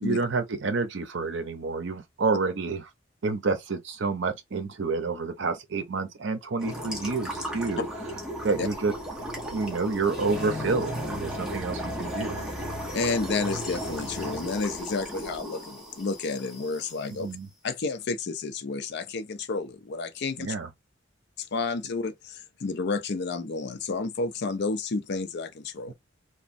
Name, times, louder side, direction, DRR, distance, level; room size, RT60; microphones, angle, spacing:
voice 1, 0.0-2.9 3.2-7.9 8.4-8.9 9.5-12.5 17.1-17.5 20.4-20.7 25.9-26.0, right 4 dB, 65° right, 0.6 m, -29 dB
sound 1, 6.6-17.0, equal, 5° right, 0.8 m, -35 dB
voice 2, 12.9-17.3 17.6-20.5 21.4-25.9, left 4 dB, 60° left, 0.5 m, -31 dB
3.0 x 2.2 x 2.5 m
head